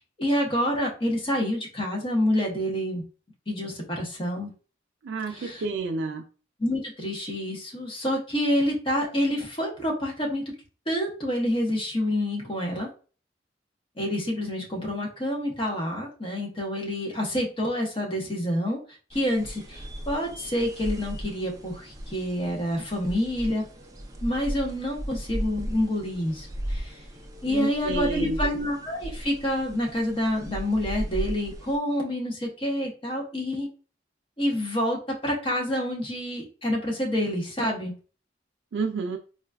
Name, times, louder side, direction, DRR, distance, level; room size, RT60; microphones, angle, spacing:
voice 1, 0.2-3.0 3.5-4.5 5.3-5.6 6.6-10.4 10.9-12.9 14.0-18.8 19.1-23.7 24.2-27.0 27.4-33.7 34.4-37.9, left 1 dB, 30° left, -1 dB, 0.9 m, -27 dB
voice 2, 5.0-6.2 27.5-28.4 38.7-39.2, right 4 dB, 80° right, 3 dB, 0.4 m, -30 dB
sound 1, 19.1-31.8, equal, 20° right, 0.5 m, -36 dB
3.8 x 2.4 x 2.2 m, 0.37 s
head